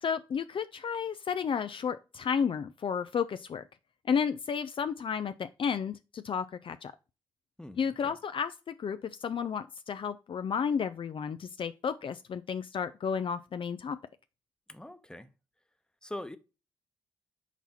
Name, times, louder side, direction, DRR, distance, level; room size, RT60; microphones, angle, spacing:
voice 1, 0.0-3.6 4.1-6.9 7.8-14.0, left 6 dB, 50° left, 0.5 m, -32 dB
voice 2, 7.6-8.1 14.7-15.3 16.0-16.4, left 1 dB, 5° left, 1.0 m, -43 dB
6.0 x 4.2 x 4.2 m
hypercardioid pair, 40°, 11 cm